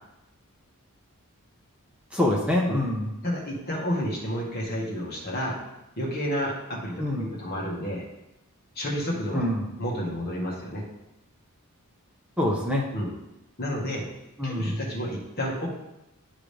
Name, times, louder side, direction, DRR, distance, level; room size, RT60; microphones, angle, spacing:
voice 1, 2.1-3.1 7.0-7.3 9.3-9.7 12.4-12.8 14.4-14.8, left 1 dB, 5° right, -3 dB, 0.9 m, -25 dB
voice 2, 3.2-5.6 6.0-8.0 8.8-9.4 9.8-10.8 12.9-13.1 13.6-14.0 14.4-15.7, equal, 45° left, -3 dB, 1.7 m, -30 dB
11.0 x 3.8 x 3.4 m, 0.91 s
head